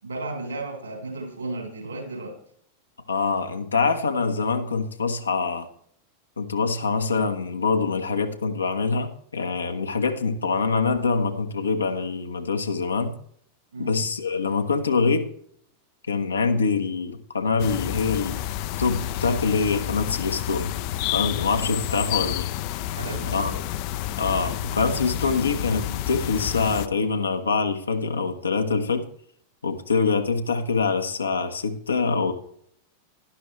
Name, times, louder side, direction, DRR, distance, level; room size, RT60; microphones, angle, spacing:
voice 1, 0.0-2.4 13.7-14.0 21.8-22.2 22.9-23.6, right 2 dB, 75° right, 2 dB, 3.9 m, -34 dB
voice 2, 3.1-5.7 6.4-13.1 13.8-15.3 16.1-18.4 18.8-20.7 21.1-22.5 23.3-23.5 24.2-29.0 29.6-32.3, left 4 dB, 75° left, 6 dB, 1.1 m, -24 dB
sound 1, 17.6-26.9, left 13 dB, 45° left, 0.5 m, -30 dB
12.0 x 11.5 x 3.2 m, 0.66 s
figure-of-eight pair, 90°, 0 cm